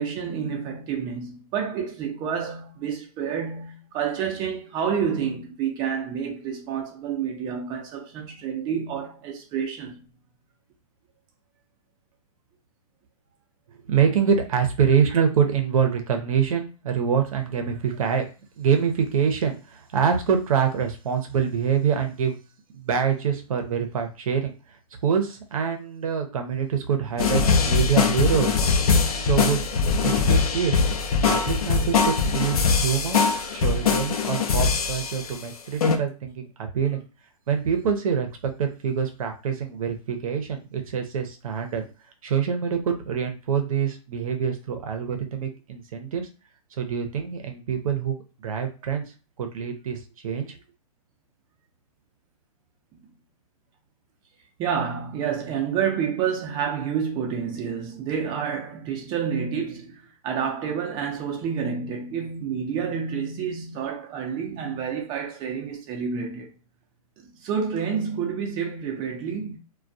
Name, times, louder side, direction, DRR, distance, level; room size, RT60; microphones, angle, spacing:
voice 1, 0.0-10.1 33.3-33.6 54.6-66.5 67.4-69.6, right 7 dB, 20° right, 0.5 m, -29 dB
voice 2, 13.9-18.2 18.6-22.4 22.7-24.5 25.0-28.6 29.1-30.8 31.3-33.2 33.5-37.0 37.5-41.8 42.2-46.3 46.8-49.0 49.4-50.0 50.2-50.6, right 7 dB, 65° right, 0.7 m, -25 dB
sound 1, 27.2-35.4 35.8-36.0, left 5 dB, 70° left, 0.5 m, -22 dB
2.2 x 2.2 x 2.6 m
hypercardioid pair, 135°, 19 cm